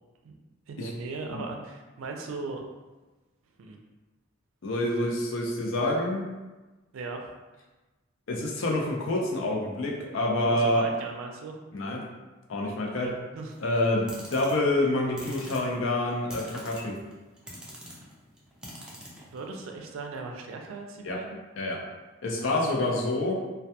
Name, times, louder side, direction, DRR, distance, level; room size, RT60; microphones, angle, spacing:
voice 1, 0.7-2.6 3.6-3.8 6.9-7.2 10.4-11.5 12.8-13.6 19.2-21.4, right 3 dB, 90° right, 3 dB, 0.4 m, -38 dB
voice 2, 4.6-6.3 8.3-10.9 11.7-12.0 12.5-13.1 13.6-17.0 21.0-21.2 21.6-21.8 22.2-23.4, left 1 dB, 70° left, 0 dB, 0.5 m, -27 dB
sound 1, 13.5-19.6, equal, 5° right, 0.4 m, -45 dB
2.2 x 2.2 x 2.8 m, 1.2 s
head